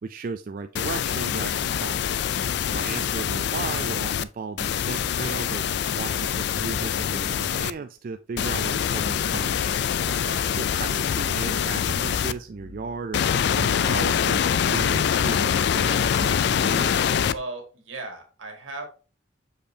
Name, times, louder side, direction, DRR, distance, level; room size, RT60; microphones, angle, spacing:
voice 1, 0.0-2.1 2.7-5.6 5.9-9.8 10.5-13.2 13.5-14.4 14.7-16.9, right 4 dB, 45° right, 8 dB, 0.3 m, -35 dB
sound 1, 0.8-4.2 4.6-7.7 8.4-12.3 13.1-17.4, left 8 dB, 60° left, 0.3 m, -24 dB
sound 2, 8.6-14.0, left 3 dB, 90° left, 0.8 m, -48 dB
voice 2, 10.1-10.4 17.3-18.9, right 2 dB, 85° right, 3 dB, 1.9 m, -37 dB
6.6 x 5.2 x 2.7 m, 0.34 s
head